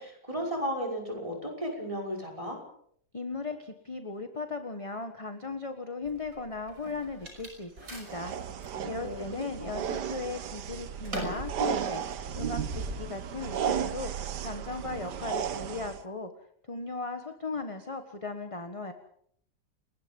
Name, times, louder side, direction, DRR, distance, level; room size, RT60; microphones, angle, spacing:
voice 1, 0.0-2.6 9.0-9.8, equal, 20° right, 2 dB, 5.8 m, -35 dB
voice 2, 3.1-8.3 8.8-12.0 12.4-14.1 14.4-16.3 16.7-18.9, left 3 dB, 20° left, 7 dB, 1.4 m, -37 dB
sound 1, 6.1-8.8 9.3-9.9 10.2-13.0, right 1 dB, 55° right, 6.0 m, -40 dB
sound 2, 8.1-16.0, right 8 dB, 80° right, 1.7 m, -34 dB
29.5 x 20.0 x 5.4 m, 0.66 s
omnidirectional pair, 1.8 m